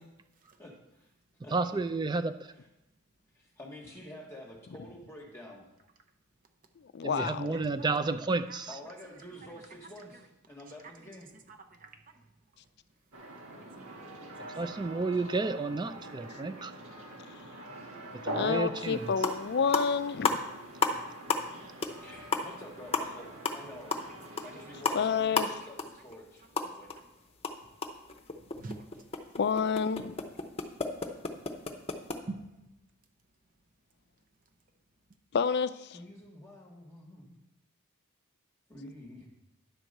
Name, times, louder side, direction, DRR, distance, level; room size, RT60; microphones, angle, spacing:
voice 1, 0.6-1.1 1.4-1.8 3.3-5.6 7.8-8.0 8.7-11.3 22.0-24.0 24.4-26.9 35.9-37.4 38.7-39.3, left 1 dB, 10° left, 1.2 m, -48 dB
voice 2, 1.5-2.4 7.0-8.7 14.6-16.7 18.1-19.1, right 3 dB, 20° right, 0.3 m, -31 dB
voice 3, 6.9-7.5 18.3-20.4 24.9-25.5 29.4-30.2 35.3-36.0, left 6 dB, 50° left, 0.4 m, -29 dB
sound 1, 13.1-25.2, right 1 dB, 85° right, 1.6 m, -44 dB
voice 4, 16.8-17.2 17.8-17.9 18.2-18.3 28.6-28.9 32.3-32.7, right 2 dB, 40° right, 0.7 m, -45 dB
sound 2, 18.8-18.9 19.1-19.4 19.7-21.0 21.3-21.6 21.8-22.0 22.3-27.0 27.3-32.2, left 4 dB, 30° left, 0.7 m, -32 dB
10.0 x 4.6 x 6.5 m
head